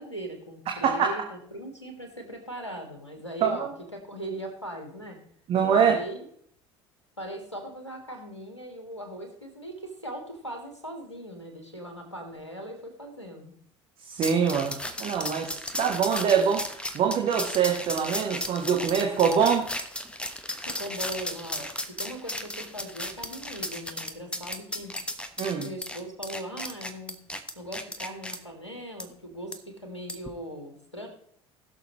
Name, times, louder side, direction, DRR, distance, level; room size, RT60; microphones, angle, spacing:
voice 1, 0.0-5.2 5.7-6.3 7.2-13.5 20.7-25.0 25.6-27.1 27.6-31.1, right 1 dB, 85° left, 3 dB, 2.1 m, -39 dB
voice 2, 5.5-6.0 14.1-16.7 16.9-19.7 25.4-25.7, right 7 dB, 40° right, 2 dB, 1.4 m, -24 dB
sound 1, 14.2-28.4 29.0-29.1 29.5-29.6 30.1-30.3, left 1 dB, 5° left, 1.1 m, -35 dB
20.0 x 6.8 x 3.1 m, 0.63 s
figure-of-eight pair, 65°, 15 cm